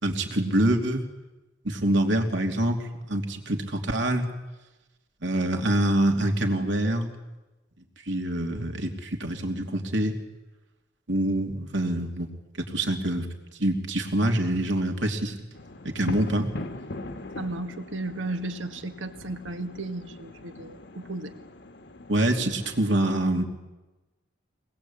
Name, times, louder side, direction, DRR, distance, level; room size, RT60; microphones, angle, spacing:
voice 1, 0.0-1.0 1.6-4.3 5.2-7.1 8.1-10.1 11.1-12.3 12.6-13.3 13.6-15.3 15.8-16.5 22.1-23.4, right 1 dB, 75° right, 4 dB, 2.9 m, -25 dB
sound 1, 15.5-22.8, left 2 dB, 60° left, 1.4 m, -41 dB
voice 2, 17.3-21.3, right 2 dB, 90° right, 7 dB, 1.9 m, -34 dB
24.0 x 20.0 x 8.7 m, 1.1 s
head